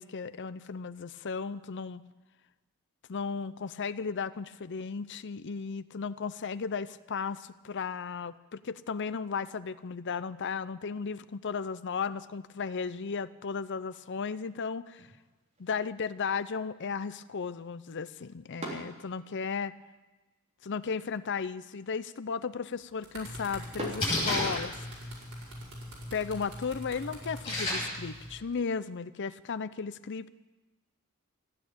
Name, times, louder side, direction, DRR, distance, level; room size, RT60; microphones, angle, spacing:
voice 1, 0.0-2.0 3.1-15.1 15.6-19.7 20.6-24.8 26.1-30.3, left 5 dB, 55° left, 15 dB, 0.6 m, -35 dB
sound 1, 14.8-24.9, right 1 dB, 30° right, 3.6 m, -49 dB
sound 2, 22.7-27.4 28.3-28.5, right 2 dB, 70° right, 5.2 m, -48 dB
Splash splatter, 23.2-28.3, left 1 dB, 25° left, 7.7 m, -35 dB
15.0 x 10.5 x 8.8 m, 1.2 s
head